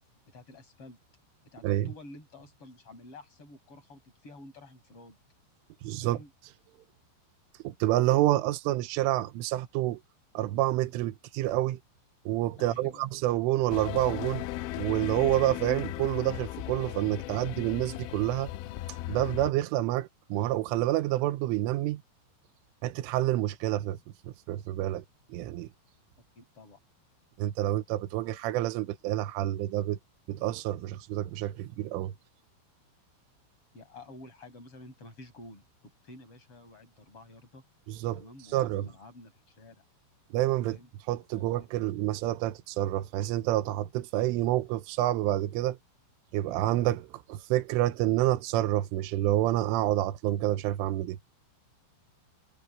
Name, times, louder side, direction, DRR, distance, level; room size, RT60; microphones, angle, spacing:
voice 1, 0.3-1.0 1.4-5.2 6.0-6.3 12.6-13.1 26.4-26.8 33.7-35.6 36.0-37.6 38.1-39.8 40.6-40.9 41.3-41.7, left 2 dB, 25° left, 8.7 m, -50 dB
voice 2, 5.8-6.2 7.6-10.0 10.3-11.8 12.3-14.5 14.7-18.5 19.1-22.0 22.8-24.0 24.5-25.0 25.3-25.7 27.4-30.0 30.3-32.1 37.9-38.2 38.5-38.9 40.3-40.8 41.1-45.8 46.3-51.2, right 15 dB, 85° right, 3.5 m, -28 dB
sound 1, 13.7-19.5, left 15 dB, 85° left, 3.1 m, -37 dB
omnidirectional pair, 5.7 m